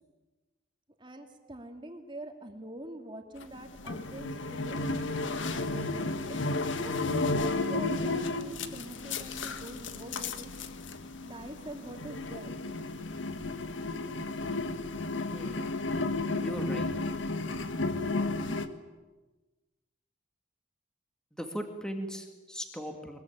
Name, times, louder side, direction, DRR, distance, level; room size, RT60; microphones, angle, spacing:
voice 1, 1.0-4.9 5.5-10.5 11.2-12.5, right 1 dB, 25° right, 4 dB, 2.8 m, -44 dB
sound 1, 3.4-18.7, left 2 dB, 80° left, 1.6 m, -33 dB
voice 2, 16.4-16.9 21.3-23.2, equal, 5° left, 4 dB, 2.1 m, -38 dB
23.5 x 22.0 x 9.2 m, 1.2 s
head